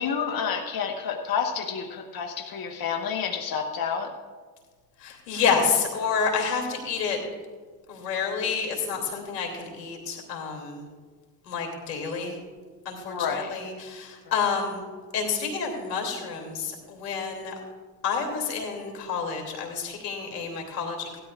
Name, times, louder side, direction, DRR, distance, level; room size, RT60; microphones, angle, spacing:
voice 1, 0.0-4.1 13.1-13.6, left 6 dB, 45° left, 3 dB, 1.4 m, -29 dB
voice 2, 5.0-7.2 7.9-10.8 11.5-12.4 12.8-14.8 15.1-17.5 18.0-21.2, left 5 dB, 80° left, 1 dB, 3.0 m, -29 dB
18.0 x 12.5 x 2.5 m, 1.5 s
hypercardioid pair, 70°, 49 cm